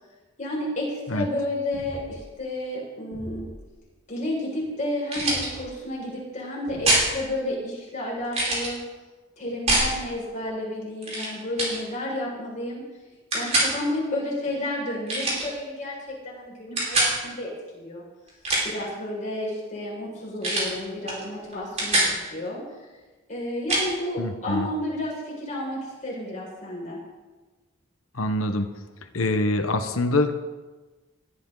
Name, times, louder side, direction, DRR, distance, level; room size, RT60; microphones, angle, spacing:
voice 1, 0.4-3.4 4.1-8.8 9.4-12.8 13.3-18.0 18.6-22.6 23.3-27.0, left 1 dB, 35° left, -4 dB, 6.0 m, -31 dB
sound 1, 1.7-2.3 3.1-3.7 5.2-5.7 6.7-7.3, equal, 70° right, 3.5 m, -41 dB
sound 2, 5.1-5.5 6.8-7.1 8.3-8.7 9.7-9.9 11.0-11.3 11.6-11.8 13.3-13.7 15.1-15.5 16.8-17.1 18.3-18.8 20.4-20.7 21.1-21.2 21.5-22.1 23.7-23.9, right 1 dB, 30° right, 5.0 m, -23 dB
voice 2, 24.2-24.7 28.1-28.7 29.1-30.4, left 2 dB, 80° left, 7 dB, 1.2 m, -25 dB
19.5 x 13.0 x 4.0 m, 1.2 s
head